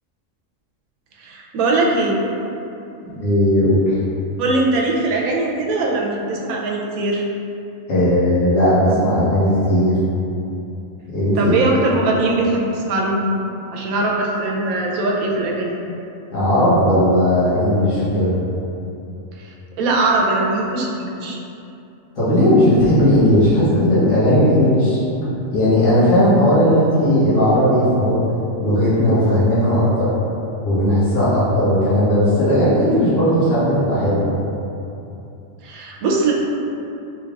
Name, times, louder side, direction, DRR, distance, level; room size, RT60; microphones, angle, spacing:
voice 1, 1.2-2.2 4.4-7.2 11.4-13.3 13.7-15.8 19.4-21.4 35.6-36.3, right 2 dB, 90° right, -2 dB, 1.0 m, -21 dB
voice 2, 3.2-3.9 7.9-9.9 11.1-11.6 16.3-18.3 22.2-25.0 25.5-28.2 28.6-30.1 30.6-34.3, equal, 65° left, -11 dB, 1.5 m, -16 dB
3.6 x 3.3 x 2.3 m, 2.8 s
omnidirectional pair, 1.4 m